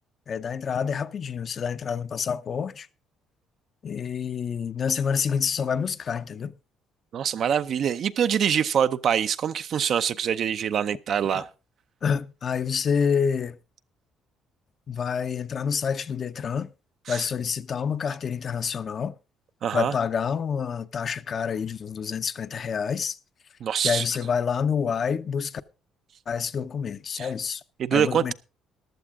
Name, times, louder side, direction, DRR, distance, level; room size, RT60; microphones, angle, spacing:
voice 1, 0.3-2.9 3.8-6.5 11.3-11.4 12.0-13.6 14.9-16.7 17.1-19.1 19.7-23.2 23.8-25.6 26.3-27.6 27.9-28.3, left 6 dB, 45° left, 0.7 m, -28 dB
voice 2, 7.1-11.5 17.1-17.2 19.6-19.9 23.6-24.0 27.2-27.3 27.8-28.3, right 8 dB, 55° right, 0.6 m, -24 dB
14.5 x 11.5 x 3.7 m
cardioid pair, 100°, 0 cm